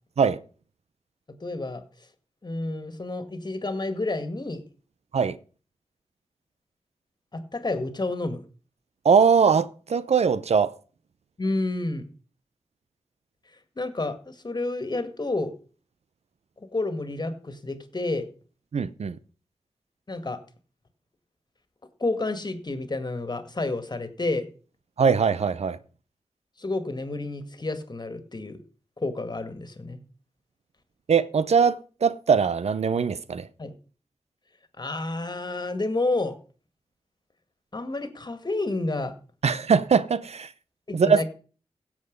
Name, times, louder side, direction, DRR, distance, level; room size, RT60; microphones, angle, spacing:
voice 1, 1.4-1.8 2.4-4.6 7.3-8.4 11.4-12.1 13.8-15.5 16.6-18.3 20.1-20.4 22.0-24.5 26.6-28.6 29.0-30.0 33.6-33.7 34.8-36.4 37.7-39.1 40.9-41.2, left 2 dB, 40° left, 1.9 m, -30 dB
voice 2, 9.0-10.7 18.7-19.2 25.0-25.8 31.1-33.5 39.4-40.5 40.9-41.2, right 6 dB, 80° right, 0.7 m, -21 dB
16.5 x 7.3 x 5.3 m
cardioid pair, 55°, 11 cm